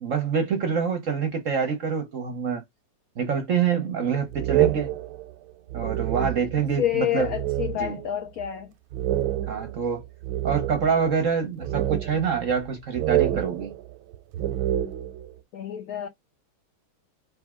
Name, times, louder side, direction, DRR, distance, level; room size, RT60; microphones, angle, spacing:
voice 1, 0.0-2.6 3.2-4.9 5.7-7.3 7.8-8.0 9.5-10.0 10.4-13.7, right 6 dB, 60° right, 0.9 m, -26 dB
sound 1, 4.3-6.8 7.2-8.1 8.4-8.5 8.9-11.1 11.6-12.7 12.9-15.3, right 13 dB, 90° right, 1.4 m, -27 dB
voice 2, 6.8-8.7 15.5-16.1, left 11 dB, 80° left, 0.8 m, -28 dB
4.0 x 3.3 x 3.6 m
omnidirectional pair, 2.2 m